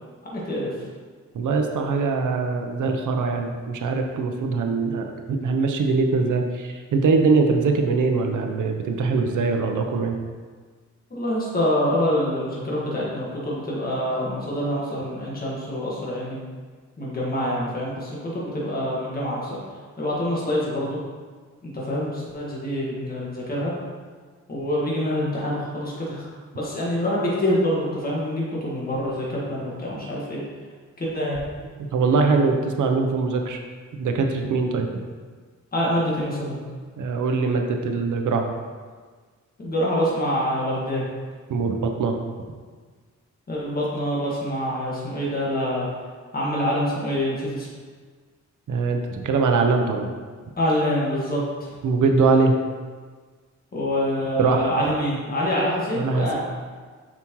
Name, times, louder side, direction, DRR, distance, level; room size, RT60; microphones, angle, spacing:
voice 1, 0.3-0.7 11.1-16.4 17.0-19.6 20.0-21.0 21.7-23.7 24.5-26.3 26.5-30.4 31.0-31.4 35.7-36.6 39.6-41.0 43.5-45.9 46.3-47.7 50.6-51.7 53.7-56.4, equal, 30° left, -5 dB, 1.7 m, -26 dB
voice 2, 1.3-10.2 31.9-33.6 33.9-34.9 37.0-38.5 41.5-42.1 48.7-50.1 51.8-52.5 54.4-54.7 55.9-56.4, right 4 dB, 80° right, 4 dB, 0.8 m, -22 dB
7.3 x 6.0 x 3.1 m, 1.5 s
wide cardioid pair, 170°, 30 cm